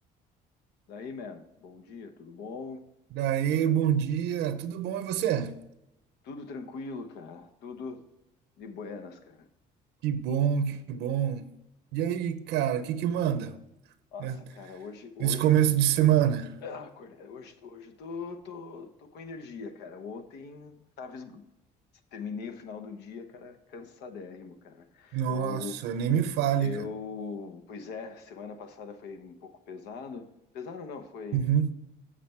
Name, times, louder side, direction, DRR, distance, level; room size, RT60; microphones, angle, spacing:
voice 1, 0.9-2.8 6.2-8.0 8.6-9.5 14.1-15.5 16.6-21.4 22.1-25.8 26.6-30.3 30.5-31.5, left 5 dB, 80° left, 1.0 m, -41 dB
voice 2, 3.1-5.6 10.0-11.5 11.9-13.6 14.2-14.4 15.2-16.6 25.1-26.9 31.3-31.7, right 10 dB, 85° right, 0.6 m, -26 dB
7.5 x 6.7 x 4.4 m
cardioid pair, 110°, 17 cm